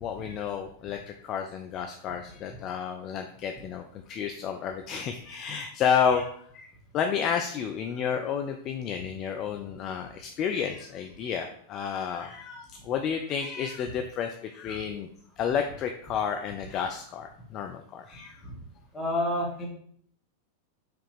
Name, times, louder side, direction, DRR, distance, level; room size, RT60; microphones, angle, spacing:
voice 1, 0.0-6.3 6.5-6.7 6.9-15.1 15.4-18.4, left 7 dB, 35° left, 5 dB, 0.3 m, -31 dB
voice 2, 18.9-19.7, left 1 dB, 15° left, -2 dB, 1.3 m, -29 dB
4.7 x 2.9 x 3.3 m, 0.62 s
figure-of-eight pair, 90°, 0 cm